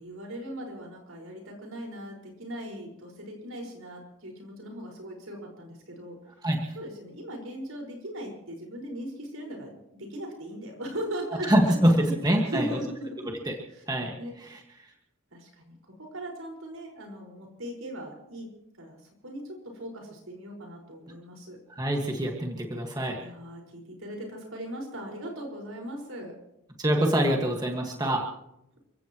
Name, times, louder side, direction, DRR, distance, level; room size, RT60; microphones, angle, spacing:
voice 1, 0.0-6.2 6.8-12.1 12.4-13.4 13.7-13.8 14.2-14.3 15.3-18.5 18.8-19.0 19.2-21.6 23.2-26.4, right 1 dB, 80° right, 1 dB, 5.1 m, -39 dB
voice 2, 6.4-6.7 11.4-12.8 13.5-13.6 13.9-14.6 21.7-23.2 26.8-28.2, right 1 dB, 20° right, 1 dB, 1.7 m, -25 dB
29.5 x 16.0 x 3.1 m, 0.83 s
head